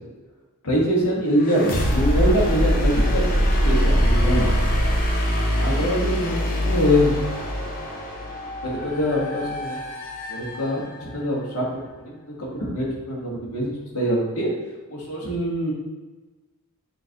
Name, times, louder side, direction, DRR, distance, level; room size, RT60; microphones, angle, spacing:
voice 1, 0.6-4.6 5.6-7.2 8.6-9.8 10.3-11.7 12.0-14.5 14.9-15.7, equal, 75° left, -4 dB, 1.3 m, -24 dB
sound 1, 1.4-11.1, equal, 40° left, 0.7 m, -23 dB
5.7 x 2.5 x 2.8 m, 1.2 s
head